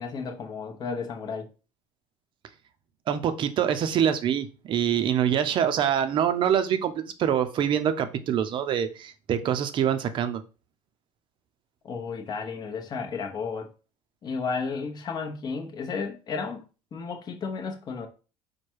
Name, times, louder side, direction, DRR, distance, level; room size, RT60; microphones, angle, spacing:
voice 1, 0.0-1.5 11.8-13.7 14.2-16.6 16.9-18.1, left 5 dB, 35° left, 0.9 m, -33 dB
voice 2, 3.1-10.4, right 9 dB, 45° right, 0.6 m, -25 dB
4.7 x 2.2 x 4.5 m
cardioid pair, 130°, 12 cm